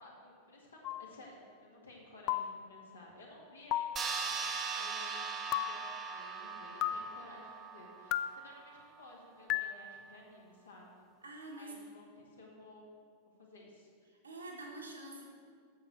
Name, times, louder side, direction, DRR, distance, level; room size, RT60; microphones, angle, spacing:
voice 1, 0.0-11.0 11.5-12.8 13.4-13.9, left 2 dB, 75° left, -4 dB, 2.1 m, -55 dB
sound 1, 0.8-1.1 2.3-2.6 3.7-4.0 5.5-5.8 6.8-7.1 8.1-8.4 9.5-9.8, left 13 dB, 40° left, 0.3 m, -34 dB
sound 2, 4.0-8.8, right 5 dB, 25° right, 0.9 m, -40 dB
voice 2, 11.2-11.7 14.2-15.3, right 2 dB, 75° right, -2 dB, 1.8 m, -46 dB
8.6 x 6.8 x 6.3 m, 2.1 s
figure-of-eight pair, 90°, 0 cm